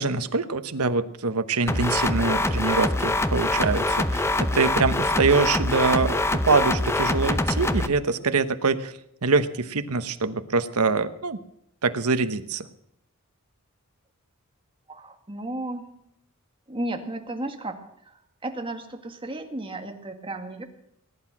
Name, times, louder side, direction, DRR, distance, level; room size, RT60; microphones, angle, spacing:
voice 1, 0.0-11.4 11.8-12.7, right 4 dB, 80° right, 11 dB, 1.1 m, -24 dB
sound 1, 1.7-7.9, left 2 dB, 10° left, 0.7 m, -24 dB
voice 2, 14.9-15.9 16.7-17.8 18.0-20.6, right 1 dB, 25° right, 4 dB, 1.9 m, -34 dB
19.5 x 11.0 x 6.1 m, 0.77 s
head